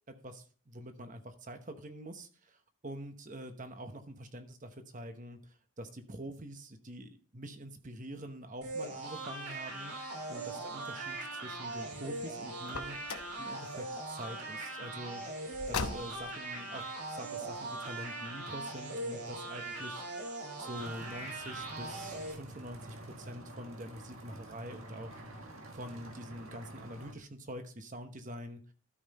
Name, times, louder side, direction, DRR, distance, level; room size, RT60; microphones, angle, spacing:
voice 1, 0.1-13.0 13.4-15.2 15.7-25.5 25.7-28.6, right 1 dB, 35° right, 7 dB, 1.0 m, -46 dB
sound 1, 8.6-22.3, right 2 dB, 85° right, 3.7 m, -40 dB
Car, 12.6-13.4 15.5-16.4, left 4 dB, 75° left, 1.0 m, -38 dB
sound 2, 20.8-27.1, right 1 dB, 65° right, 1.8 m, -49 dB
12.5 x 5.6 x 4.2 m, 0.40 s
head